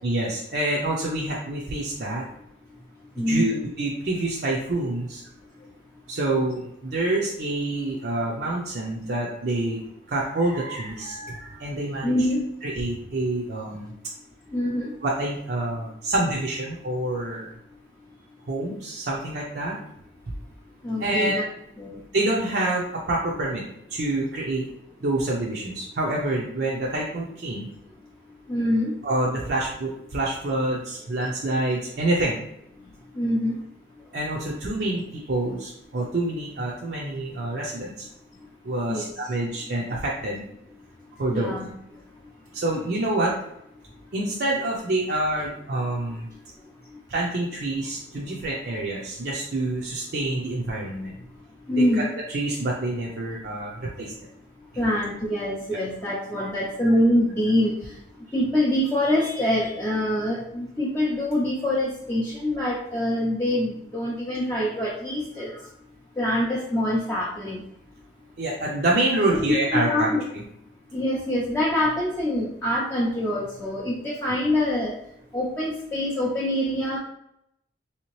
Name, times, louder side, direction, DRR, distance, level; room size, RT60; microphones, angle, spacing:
voice 1, 0.0-2.2 3.3-5.2 6.1-9.8 10.1-12.1 12.6-13.9 15.0-17.5 18.5-19.8 21.0-21.4 22.1-23.6 23.9-24.6 25.0-27.7 29.0-32.4 34.1-38.1 38.6-40.4 41.2-41.5 42.5-43.4 44.1-46.3 47.1-51.1 52.3-54.1 56.4-56.5 68.4-70.1, right 2 dB, 55° right, -3 dB, 0.5 m, -27 dB
voice 2, 3.2-3.6 12.0-12.4 14.5-14.9 20.8-21.4 21.8-22.0 28.5-28.9 33.1-33.5 38.9-39.1 41.3-41.7 51.7-52.1 54.8-57.8 58.3-65.6 66.2-67.6 69.2-70.2 70.9-75.0 75.3-77.0, left 1 dB, 10° left, -5 dB, 0.5 m, -25 dB
3.3 x 2.8 x 3.0 m, 0.77 s
head